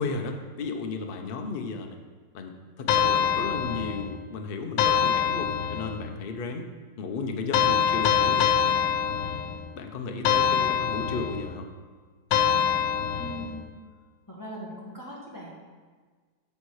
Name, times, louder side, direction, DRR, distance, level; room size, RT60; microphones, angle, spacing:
voice 1, 0.0-2.0 2.3-6.7 7.0-8.8 9.7-11.7, left 4 dB, 55° left, 4 dB, 0.6 m, -34 dB
sound 1, 2.9-4.2 4.8-6.1 7.5-9.7 10.2-11.5 12.3-13.6, left 8 dB, 85° left, 1.4 m, -24 dB
voice 2, 13.2-14.0 14.3-15.6, equal, 10° left, -5 dB, 1.6 m, -41 dB
12.5 x 4.3 x 4.8 m, 1.5 s
omnidirectional pair, 2.0 m